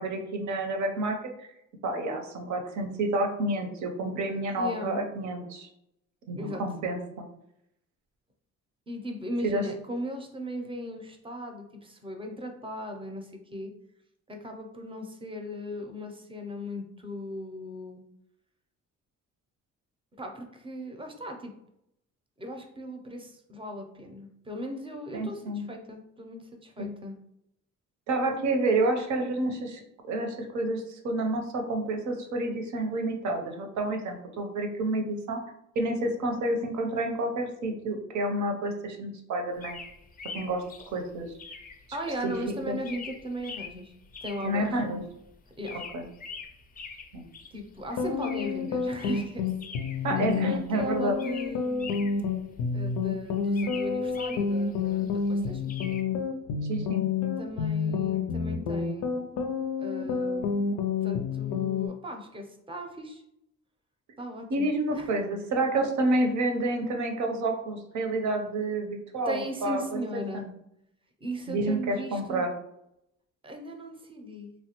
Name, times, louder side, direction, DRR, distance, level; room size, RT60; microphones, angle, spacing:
voice 1, 0.0-1.5 1.8-5.7 6.3-7.2 9.4-9.6 25.1-25.6 26.8-26.9 28.1-29.8 30.1-35.4 35.8-39.8 40.3-40.6 40.9-41.3 42.2-42.3 42.7-42.8 44.4-45.0 45.9-46.1 47.1-47.2 50.0-51.2 56.7-57.0 64.5-70.5 71.5-72.5, right 2 dB, 75° right, 4 dB, 0.7 m, -29 dB
voice 2, 4.6-5.0 6.4-6.6 8.9-13.7 14.3-18.0 20.2-21.5 22.4-27.2 41.9-43.9 44.2-44.7 45.6-45.8 47.5-49.5 50.0-52.0 52.7-55.8 57.4-59.1 59.8-60.6 61.0-63.2 64.2-65.1 69.2-70.5 71.2-72.5 73.4-74.5, equal, 20° right, 4 dB, 0.6 m, -37 dB
sound 1, 39.6-56.0, left 5 dB, 30° left, 0.4 m, -45 dB
sound 2, 47.8-61.9, left 5 dB, 85° left, 0.5 m, -29 dB
3.2 x 2.2 x 2.9 m, 0.79 s
cardioid pair, 90°, 30 cm